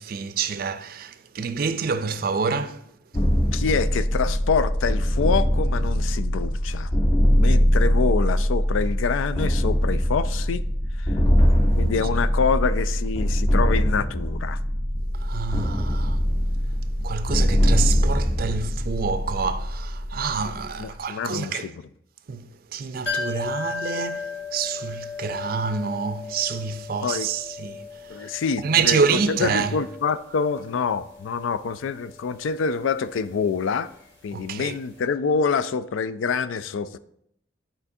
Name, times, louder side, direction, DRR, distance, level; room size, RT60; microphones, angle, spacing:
voice 1, 0.0-2.8 15.2-16.2 17.0-21.7 22.3-22.4 22.7-27.8 28.6-29.7 34.3-34.7, right 5 dB, 50° right, 0.4 m, -27 dB
sound 1, 3.1-20.8, equal, 25° left, 0.5 m, -22 dB
voice 2, 3.5-6.9 7.4-10.6 11.0-11.2 11.8-14.6 20.8-21.8 27.0-27.3 28.1-33.9 34.2-37.0, left 5 dB, 90° left, 0.4 m, -26 dB
sound 2, 23.1-34.7 34.9-35.0, left 4 dB, 70° left, 1.9 m, -37 dB
11.0 x 4.4 x 2.7 m
head